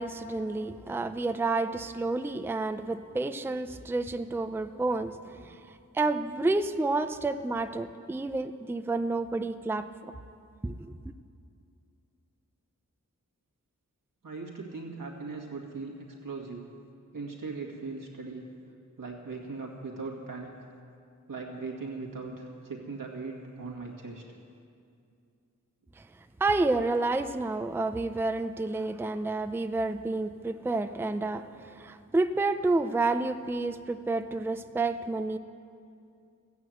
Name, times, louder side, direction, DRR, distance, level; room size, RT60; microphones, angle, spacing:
voice 1, 0.0-5.6 5.9-10.1 10.6-11.0 26.0-26.1 26.4-35.4, right 3 dB, 5° right, 9 dB, 0.4 m, -30 dB
voice 2, 14.2-15.9 16.2-16.7 17.1-18.5 19.0-20.7 21.3-24.2, right 4 dB, 85° right, -1 dB, 2.1 m, -39 dB
14.5 x 9.1 x 7.8 m, 2.5 s
wide cardioid pair, 75°, 32 cm